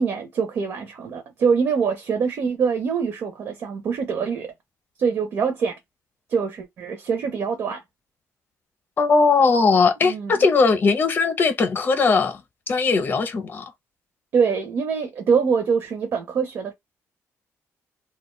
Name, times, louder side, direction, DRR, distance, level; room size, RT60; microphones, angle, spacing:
voice 1, 0.0-4.5 5.0-5.8 6.3-7.8 10.0-10.4 14.3-16.7, right 6 dB, 55° right, 0.5 m, -24 dB
voice 2, 9.0-12.4 12.7-13.6, left 4 dB, 35° left, 0.6 m, -19 dB
2.4 x 2.2 x 3.0 m
cardioid pair, 150°, 6 cm